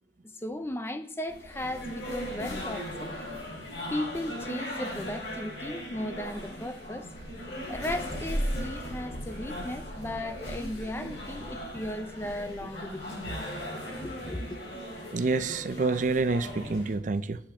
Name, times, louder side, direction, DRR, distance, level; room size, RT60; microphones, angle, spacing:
voice 1, 0.4-3.1 3.9-7.1 7.7-13.2 14.0-14.6, left 1 dB, 15° left, 0.5 m, -36 dB
sound 1, 1.3-17.0, equal, 80° left, 4.1 m, -37 dB
voice 2, 15.1-17.4, right 3 dB, 45° right, 0.5 m, -27 dB
8.5 x 6.0 x 6.0 m
head